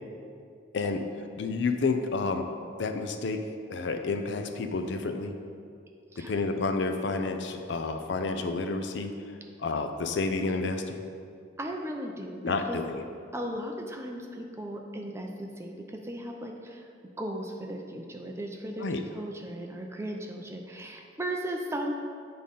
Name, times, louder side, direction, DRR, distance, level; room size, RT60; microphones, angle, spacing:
voice 1, 1.4-2.5 2.8-5.4 6.2-9.1 9.6-11.0 12.4-13.0 18.8-19.0, left 3 dB, 60° left, 6 dB, 0.5 m, -30 dB
voice 2, 11.6-12.8 13.3-16.9 17.2-21.9, right 1 dB, 15° right, 1 dB, 0.5 m, -36 dB
8.4 x 3.8 x 5.3 m, 2.3 s
head